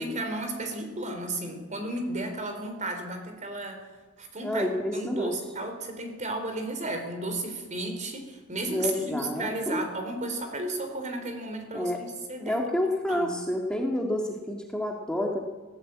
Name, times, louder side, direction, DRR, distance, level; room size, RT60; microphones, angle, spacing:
voice 1, 0.0-3.9 4.2-4.7 4.9-13.3, right 2 dB, 35° right, 6 dB, 4.0 m, -34 dB
voice 2, 4.4-5.3 8.7-9.8 11.7-12.0 12.5-15.4, left 1 dB, 5° left, 0 dB, 1.9 m, -29 dB
20.0 x 16.0 x 8.7 m, 1.3 s
head